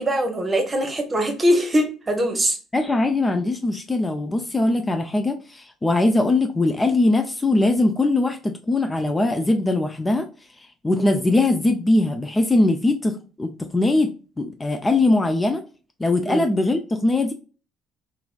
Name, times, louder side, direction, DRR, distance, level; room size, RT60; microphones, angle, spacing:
voice 1, 0.0-2.6 11.0-11.2 16.3-16.4, equal, 30° right, 5 dB, 0.9 m, -22 dB
voice 2, 2.7-10.3 10.8-15.6 16.0-17.3, left 2 dB, 20° left, 6 dB, 0.4 m, -21 dB
3.0 x 2.4 x 2.3 m, 0.35 s
hypercardioid pair, 50°, 0 cm